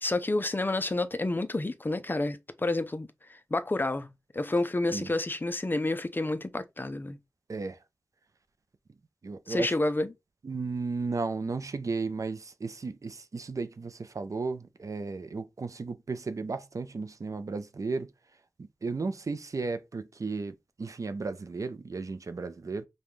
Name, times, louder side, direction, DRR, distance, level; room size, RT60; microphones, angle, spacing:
voice 1, 0.0-7.2 9.5-10.1, left 2 dB, 35° left, 0.5 m, -29 dB
voice 2, 9.2-9.7 10.4-18.1 18.6-22.9, right 4 dB, 60° right, 0.5 m, -34 dB
5.2 x 2.2 x 3.1 m
wide cardioid pair, 65°, 6 cm